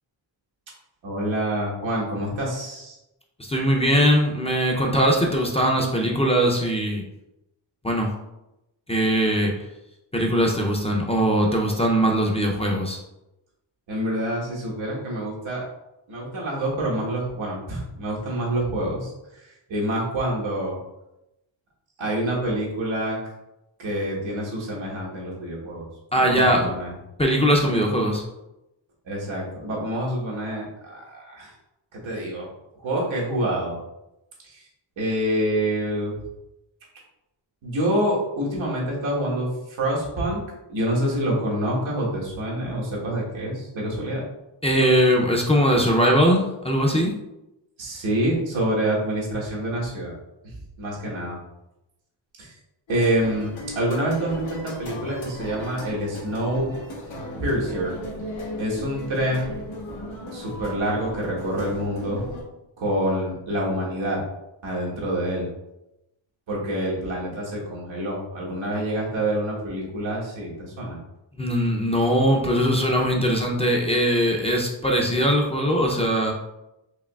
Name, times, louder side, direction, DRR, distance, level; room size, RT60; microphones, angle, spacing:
voice 1, 1.0-3.0 13.9-15.7 16.1-19.1 19.7-20.8 22.0-23.2 23.8-25.9 26.1-26.9 29.0-31.5 31.9-32.5 32.8-33.8 34.4-34.6 35.0-36.1 37.6-40.4 40.7-44.2 47.8-50.1 50.4-51.4 52.4-52.5 52.9-56.7 57.4-58.0 58.6-59.5 60.3-62.2 62.8-64.2 64.6-65.5 66.5-71.0, right 1 dB, 85° right, -4 dB, 1.4 m, -27 dB
voice 2, 3.4-7.0 7.8-8.1 8.9-9.5 10.1-13.0 26.1-26.7 27.2-28.2 44.6-47.1 71.4-76.3, equal, 15° left, 0 dB, 0.5 m, -21 dB
sound 1, 52.9-62.4, left 1 dB, 90° left, 1.1 m, -36 dB
4.8 x 2.9 x 2.3 m, 0.91 s
cardioid pair, 100°, 45 cm